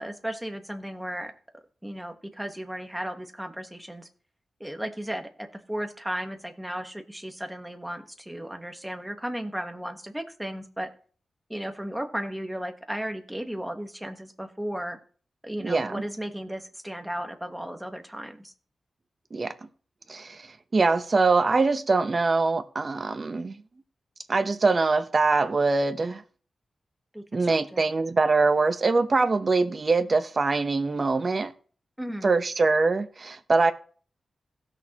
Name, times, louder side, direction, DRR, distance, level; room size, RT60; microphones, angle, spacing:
voice 1, 0.0-1.3 1.8-4.1 4.6-10.9 11.5-15.0 15.4-18.5 27.1-27.9 32.0-32.3, equal, 5° right, 1.2 m, -35 dB
voice 2, 15.6-16.0 19.3-19.5 20.1-23.6 24.3-26.2 27.3-31.5 32.2-33.7, right 3 dB, 40° right, 0.8 m, -23 dB
16.5 x 6.4 x 2.9 m
wide cardioid pair, 115°, 0 cm